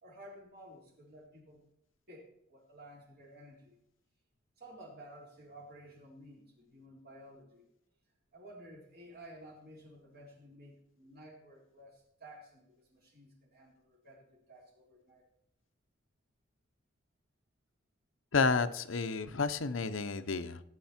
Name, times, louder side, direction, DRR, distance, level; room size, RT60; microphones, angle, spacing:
voice 1, 0.0-1.6 2.1-3.7 4.6-7.7 8.3-15.2, right 1 dB, 55° right, -2 dB, 4.0 m, -54 dB
voice 2, 18.3-20.6, left 4 dB, 85° left, 10 dB, 0.8 m, -31 dB
17.5 x 9.1 x 4.4 m, 0.77 s
head